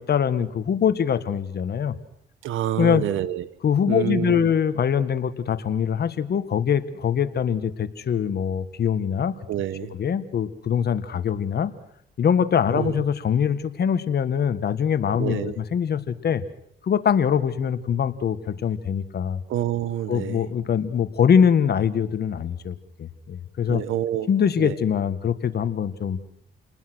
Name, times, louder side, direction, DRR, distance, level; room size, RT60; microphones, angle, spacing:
voice 1, 0.0-1.9 2.8-3.0 3.6-9.3 9.9-11.7 12.2-16.4 16.8-19.4 20.1-23.8 24.3-26.2, left 8 dB, 55° left, 12 dB, 1.7 m, -23 dB
voice 2, 2.4-3.5 3.9-4.5 9.5-10.0 12.7-13.0 15.2-15.6 19.5-20.5 23.7-24.3 24.6-24.8, right 11 dB, 80° right, 16 dB, 1.3 m, -27 dB
29.5 x 20.0 x 6.3 m, 0.72 s
cardioid pair, 90°, 20 cm